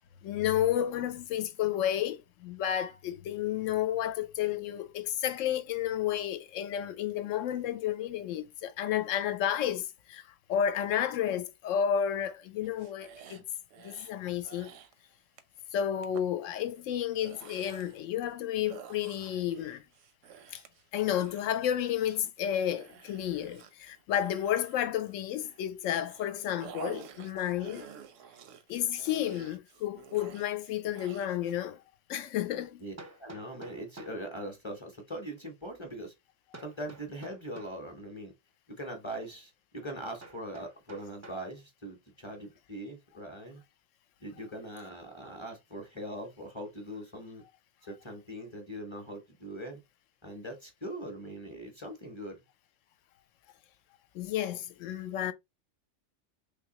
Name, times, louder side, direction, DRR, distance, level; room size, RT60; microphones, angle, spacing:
voice 1, 0.2-10.2 10.5-13.4 13.8-14.7 15.7-19.8 20.5-20.6 20.9-27.9 28.7-31.8 32.1-32.8 54.1-55.3, left 10 dB, 85° left, 0.9 m, -31 dB
sound 1, 12.6-14.1 14.4-14.9 15.4-15.6 16.0-16.3 16.9-18.0 18.7-25.6 26.0-31.5, right 8 dB, 85° right, 0.9 m, -50 dB
voice 2, 32.8-36.1 36.6-38.3 38.7-43.6 44.2-47.4 47.8-49.8 50.2-52.4, right 1 dB, 30° left, 0.7 m, -41 dB
Hammer, 33.0-34.3 36.5-37.8 40.2-41.5, right 2 dB, 20° right, 0.5 m, -50 dB
3.5 x 2.9 x 2.8 m
omnidirectional pair, 1.3 m